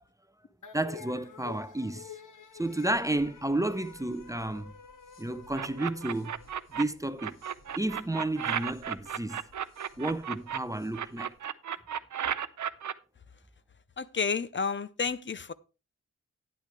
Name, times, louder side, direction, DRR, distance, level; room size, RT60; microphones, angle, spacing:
sound 1, 0.6-7.2, left 7 dB, 85° left, 1.1 m, -49 dB
voice 1, 0.7-2.1 2.5-4.7 5.2-6.4 6.7-7.4 7.8-9.4 10.0-11.3, right 1 dB, 10° right, 0.5 m, -31 dB
sound 2, 2.4-11.4, left 2 dB, 60° left, 2.0 m, -60 dB
sound 3, 5.5-6.8 7.2-10.6 10.9-12.9, right 9 dB, 75° right, 0.6 m, -33 dB
voice 2, 14.0-15.5, left 5 dB, 40° left, 0.6 m, -31 dB
11.5 x 9.9 x 3.3 m
wide cardioid pair, 125°, 30 cm